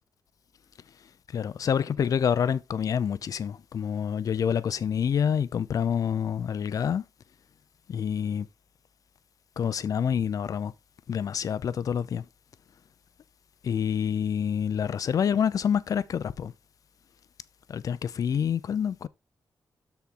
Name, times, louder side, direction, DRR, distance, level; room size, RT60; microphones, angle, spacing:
voice 1, 1.3-7.0 7.9-8.5 9.6-10.7 11.1-12.3 13.6-16.5 17.7-19.1, left 8 dB, 60° left, 0.6 m, -27 dB
13.0 x 4.4 x 3.8 m
wide cardioid pair, 135°, 7 cm